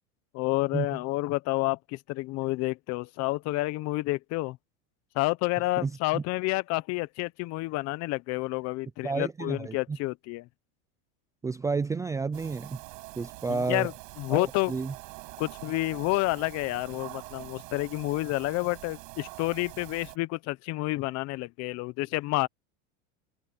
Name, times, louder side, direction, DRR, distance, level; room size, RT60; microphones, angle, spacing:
voice 1, 0.3-4.6 5.1-10.4 13.5-13.9 14.2-14.7 15.4-22.5, left 20 dB, 45° left, 1.0 m, -29 dB
voice 2, 5.8-6.2 9.0-10.0 11.4-12.8 13.2-13.9 14.3-14.9, right 4 dB, 10° right, 0.4 m, -31 dB
sound 1, 12.3-20.2, right 31 dB, 60° right, 7.0 m, -45 dB
open air
supercardioid pair, 135°, 35 cm